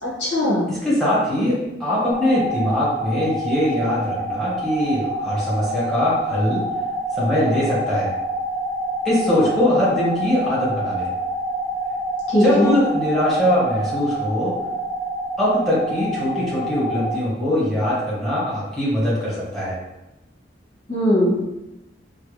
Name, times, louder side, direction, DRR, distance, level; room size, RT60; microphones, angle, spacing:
voice 1, 0.0-0.6 12.3-12.8 20.9-21.3, equal, 75° left, -7 dB, 1.4 m, -19 dB
voice 2, 0.7-6.7 7.1-8.1 9.0-11.1 12.4-14.5 15.4-19.8, left 1 dB, ahead, -8 dB, 1.1 m, -22 dB
sound 1, 2.1-17.1, right 1 dB, 25° left, 0.9 m, -27 dB
3.2 x 2.2 x 3.1 m, 0.96 s
head